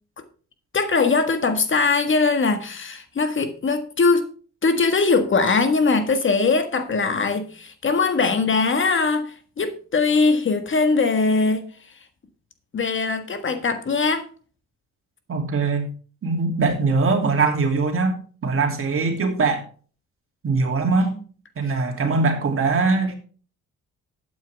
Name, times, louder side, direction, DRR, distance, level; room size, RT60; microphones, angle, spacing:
voice 1, 0.7-4.3 4.6-11.6 12.7-14.3, left 4 dB, 40° left, 1.6 m, -21 dB
voice 2, 15.3-15.9 16.2-19.6 20.4-21.2 21.6-23.1, right 4 dB, 45° right, 2.8 m, -22 dB
12.0 x 8.6 x 3.5 m
cardioid pair, 90°, 30 cm